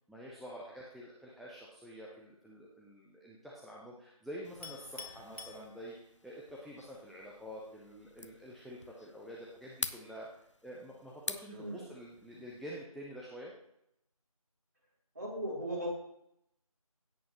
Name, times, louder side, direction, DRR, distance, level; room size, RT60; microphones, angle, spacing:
voice 1, 0.1-5.9 6.2-10.3 10.6-13.5, equal, ahead, -5 dB, 0.4 m, -48 dB
sound 1, 4.4-12.8, left 2 dB, 55° left, 0.7 m, -47 dB
Chink clink, 4.6-6.3, left 3 dB, 75° left, 1.7 m, -49 dB
voice 2, 11.5-11.9 15.1-15.9, equal, 30° right, -3 dB, 2.7 m, -37 dB
17.0 x 8.2 x 2.9 m, 0.77 s
figure-of-eight pair, 170°, 19 cm